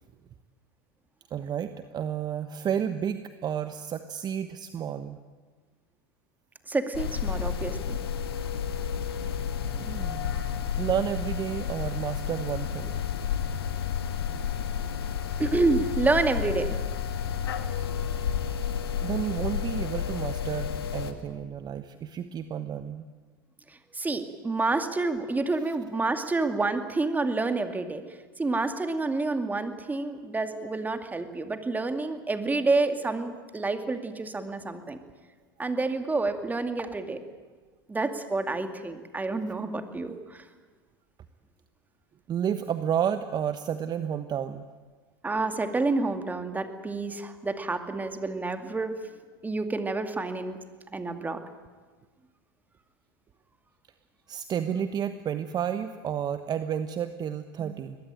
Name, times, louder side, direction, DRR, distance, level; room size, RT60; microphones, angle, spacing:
voice 1, 1.3-5.2 9.7-10.3 10.8-13.0 14.3-14.4 19.0-23.1 42.3-44.7 54.3-58.0, right 9 dB, 35° right, 10 dB, 1.2 m, -31 dB
voice 2, 6.7-8.0 15.4-16.7 23.9-28.0 28.4-35.0 35.6-37.2 37.9-40.4 45.2-48.9 49.4-50.6 50.9-51.4, right 3 dB, 15° right, 8 dB, 2.3 m, -28 dB
sound 1, 6.9-21.1, left 8 dB, 85° left, 2.1 m, -31 dB
22.5 x 20.0 x 9.1 m, 1.4 s
hypercardioid pair, 95°, 12 cm